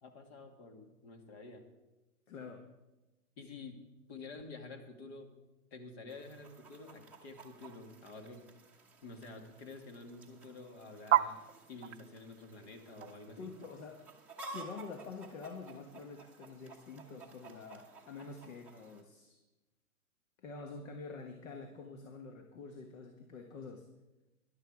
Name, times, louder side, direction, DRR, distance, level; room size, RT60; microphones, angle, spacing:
voice 1, 0.0-1.6 3.4-3.8 4.1-5.3 5.7-8.5 9.0-11.4 11.7-13.5, left 3 dB, 45° left, 5 dB, 2.2 m, -49 dB
voice 2, 2.3-2.7 13.4-14.0 14.5-19.4 20.4-23.9, left 4 dB, 60° left, 5 dB, 1.5 m, -47 dB
Chicken rooster, 6.1-19.0, right 2 dB, 5° right, 1.0 m, -55 dB
sound 1, 11.1-15.7, right 12 dB, 55° right, 0.6 m, -34 dB
13.0 x 11.5 x 4.8 m, 1.1 s
hypercardioid pair, 150°, 44 cm